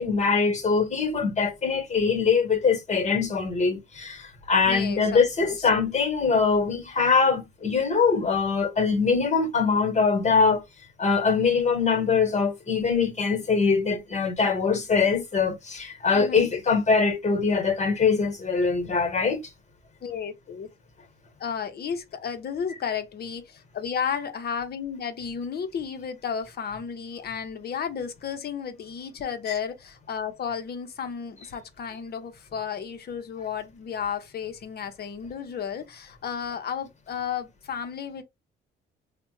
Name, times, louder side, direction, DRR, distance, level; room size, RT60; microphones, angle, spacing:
voice 1, 0.0-10.6 11.0-19.4, left 5 dB, 35° left, 1.2 m, -23 dB
voice 2, 4.7-5.7 16.2-16.5 20.0-20.7 21.4-38.2, left 7 dB, 55° left, 0.7 m, -33 dB
3.2 x 2.1 x 3.0 m
cardioid pair, 90°, 20 cm